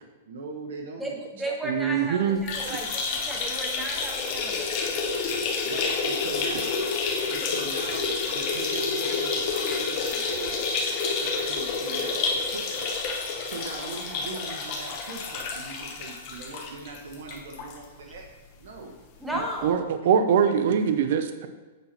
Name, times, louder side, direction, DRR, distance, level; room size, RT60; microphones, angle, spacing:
voice 1, 0.3-1.2 5.6-6.8 7.3-10.7 11.2-13.0 13.4-18.2 18.6-19.0, right 3 dB, 75° right, 0 dB, 1.1 m, -40 dB
voice 2, 1.0-4.7 19.2-19.8, right 1 dB, 5° right, -1 dB, 0.9 m, -34 dB
voice 3, 1.6-2.4 2.7-2.8 19.6-19.8 20.1-21.5, right 7 dB, 45° right, 9 dB, 0.6 m, -22 dB
sound 1, 2.4-17.8 18.1-18.2 18.5-18.6 19.6-19.7, left 4 dB, 30° left, 1.0 m, -29 dB
8.1 x 5.6 x 4.4 m, 1.3 s
supercardioid pair, 175°, 0 cm